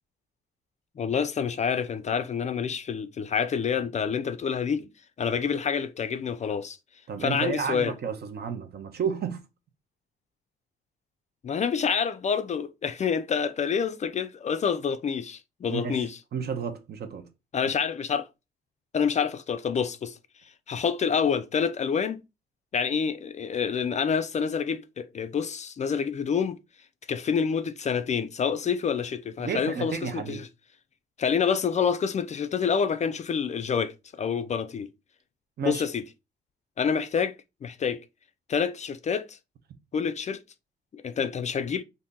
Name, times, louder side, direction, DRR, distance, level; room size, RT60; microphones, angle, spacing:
voice 1, 1.0-4.9 5.2-6.8 7.2-7.9 11.4-16.2 17.5-18.3 18.9-20.2 20.7-22.2 22.7-26.6 27.1-30.5 31.2-34.9 35.6-36.0 36.8-37.3 37.6-38.0 38.5-39.4 39.9-40.4 40.9-41.8, left 6 dB, 35° left, 0.4 m, -27 dB
voice 2, 7.1-9.4 15.7-17.3 29.4-30.4 35.6-35.8 41.2-41.3, right 6 dB, 55° right, 0.7 m, -32 dB
2.7 x 2.6 x 3.6 m
cardioid pair, 90°, 20 cm